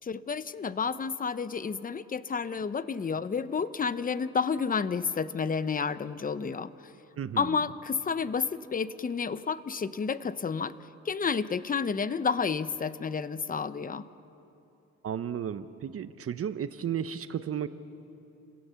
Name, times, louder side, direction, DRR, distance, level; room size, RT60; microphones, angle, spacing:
voice 1, 0.0-6.9 7.4-14.1, left 5 dB, 30° left, 14 dB, 0.8 m, -31 dB
voice 2, 7.2-7.5 15.0-17.7, right 8 dB, 50° right, 12 dB, 0.9 m, -33 dB
29.0 x 17.5 x 7.0 m, 2.8 s
cardioid pair, 90°, 30 cm